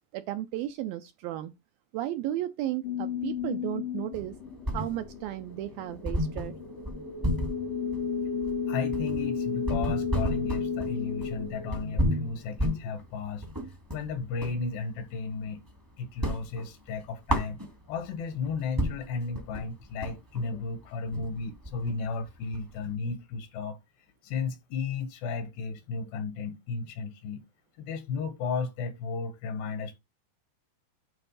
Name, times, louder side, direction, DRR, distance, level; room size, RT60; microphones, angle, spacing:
voice 1, 0.1-1.5 1.9-4.4 4.7-6.6, right 14 dB, 85° right, 2.0 m, -34 dB
sound 1, 2.8-12.6, left 6 dB, 65° left, 1.6 m, -33 dB
sound 2, 4.1-5.3 5.6-5.7 6.0-14.6 15.0-15.8 16.1-18.1 18.5-18.6 18.8-22.9, equal, 20° right, 0.5 m, -32 dB
voice 2, 8.7-13.5 13.9-15.6 16.0-17.6 17.9-23.8 24.2-27.4 27.8-30.0, left 5 dB, 80° left, 3.5 m, -34 dB
9.1 x 3.5 x 5.4 m
omnidirectional pair, 4.8 m